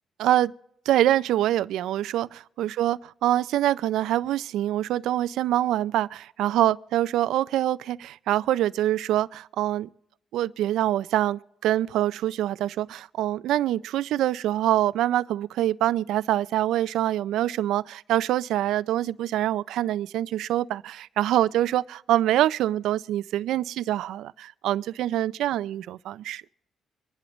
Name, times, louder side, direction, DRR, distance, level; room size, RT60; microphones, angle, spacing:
voice 1, 0.2-0.5 0.9-9.9 10.3-26.4, right 13 dB, 85° right, 0.4 m, -25 dB
25.0 x 11.0 x 3.1 m
cardioid pair, 90°, 0 cm